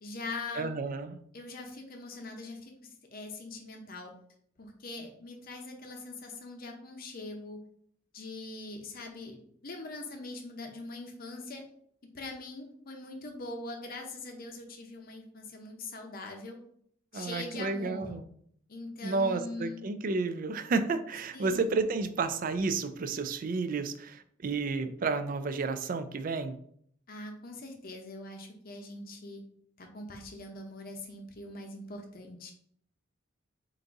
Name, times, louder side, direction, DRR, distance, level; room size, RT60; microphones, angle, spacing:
voice 1, 0.0-0.7 1.3-4.1 4.6-7.6 8.1-11.6 12.1-16.6 17.1-18.1 18.7-19.9 21.3-21.7 27.1-29.4 29.8-32.5, left 2 dB, 45° left, 3 dB, 0.7 m, -42 dB
voice 2, 0.6-1.2 17.1-18.2 19.0-26.5, right 4 dB, 45° right, 10 dB, 0.4 m, -31 dB
3.9 x 2.6 x 4.5 m, 0.64 s
head